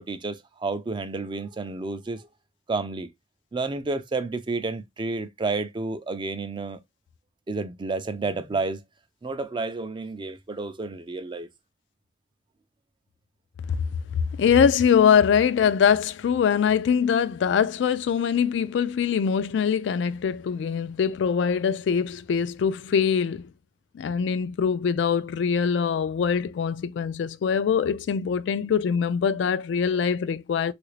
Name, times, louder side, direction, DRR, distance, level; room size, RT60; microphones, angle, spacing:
voice 1, 0.0-2.3 2.7-3.1 3.5-6.8 7.5-8.8 9.2-11.5, right 3 dB, 25° right, 0.4 m, -30 dB
voice 2, 14.4-23.5 23.9-30.7, left 7 dB, 70° left, 0.3 m, -23 dB
3.2 x 2.5 x 3.1 m
head